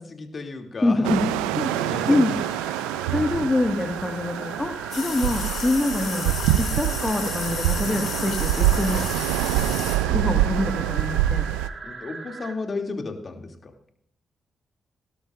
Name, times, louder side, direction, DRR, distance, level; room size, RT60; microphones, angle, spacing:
voice 1, 0.0-2.4 11.8-13.7, left 3 dB, 45° left, 3 dB, 2.7 m, -34 dB
voice 2, 0.8-1.2 1.6-1.7 2.1-2.3 3.1-9.1 10.1-11.5, left 2 dB, 20° left, 4 dB, 1.8 m, -25 dB
sound 1, 1.0-11.7, right 13 dB, 85° right, 0.4 m, -25 dB
sound 2, 1.6-12.5, right 3 dB, 50° right, 2.9 m, -38 dB
sound 3, 4.9-10.0, left 6 dB, 65° left, 3.3 m, -33 dB
18.5 x 12.0 x 2.5 m, 0.68 s
hypercardioid pair, 40°, 0 cm